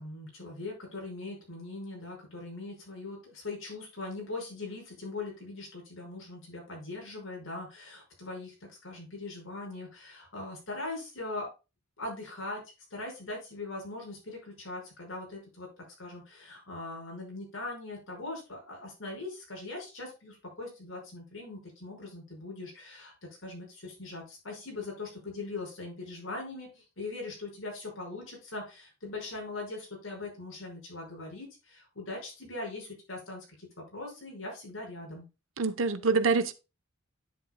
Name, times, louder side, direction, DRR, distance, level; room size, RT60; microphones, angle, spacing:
voice 1, 0.0-11.5 12.0-12.6 12.9-35.3, left 2 dB, 80° left, 5.7 m, -41 dB
voice 2, 35.6-36.5, right 4 dB, 75° right, 0.9 m, -25 dB
10.0 x 7.9 x 2.3 m
head